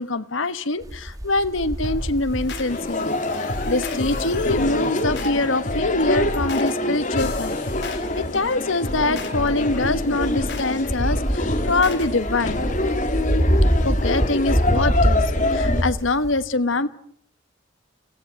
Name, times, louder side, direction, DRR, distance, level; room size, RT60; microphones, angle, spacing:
voice 1, 0.0-7.6 7.9-12.7 13.8-15.2 15.5-16.9, left 2 dB, 85° left, 12 dB, 1.3 m, -24 dB
sound 1, 0.8-3.1 3.5-4.3 5.4-5.5 6.0-6.6 7.7-8.5 10.2-16.3, equal, 20° right, 2.0 m, -24 dB
sound 2, 1.8-12.1, left 1 dB, 60° left, 3.9 m, -32 dB
sound 3, 2.7-15.8, left 2 dB, 40° left, 1.9 m, -26 dB
30.0 x 17.0 x 7.7 m, 0.66 s
head